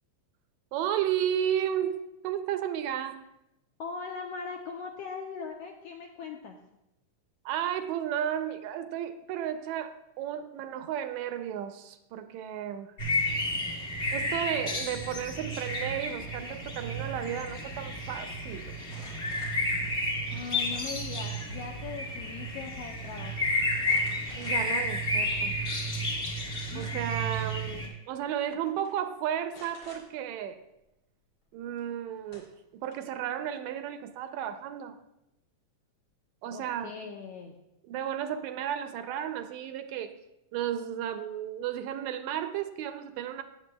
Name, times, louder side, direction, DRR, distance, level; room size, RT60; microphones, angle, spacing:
voice 1, 0.7-2.0 2.2-3.2 7.5-12.9 14.1-18.7 24.4-25.6 26.8-30.6 31.5-32.5 32.7-35.0 36.4-36.9 37.9-40.1 40.5-43.4, right 10 dB, 80° right, 9 dB, 1.8 m, -33 dB
voice 2, 3.8-6.6 20.3-23.5 26.7-27.2 27.6-27.9 36.5-37.5, left 5 dB, 75° left, 1 dB, 1.5 m, -40 dB
sound 1, 13.0-27.9, left 1 dB, 35° left, 1.4 m, -31 dB
sound 2, 18.8-19.6 20.7-21.3 21.7-22.2 22.5-22.6 23.8-24.8 25.4-25.5 26.5-27.2 28.2-28.4 28.7-28.9 29.5-30.0 31.8-31.9 32.3-33.2, left 1 dB, 55° left, 3.6 m, -52 dB
16.0 x 7.2 x 2.2 m, 0.89 s
omnidirectional pair, 3.4 m